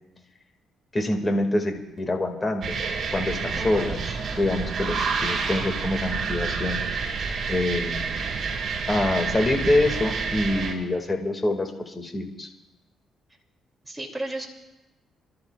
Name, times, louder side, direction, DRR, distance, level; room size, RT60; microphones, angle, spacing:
voice 1, 0.9-2.8 3.1-4.0 4.4-7.2 7.5-8.1 8.9-12.5, left 1 dB, 25° left, 4 dB, 2.1 m, -26 dB
sound 1, 2.6-10.7, right 5 dB, 55° right, 3.0 m, -29 dB
voice 2, 3.6-4.0 13.8-14.5, right 1 dB, 5° right, -1 dB, 2.7 m, -33 dB
27.5 x 13.0 x 2.4 m, 0.99 s
cardioid pair, 90°, 0 cm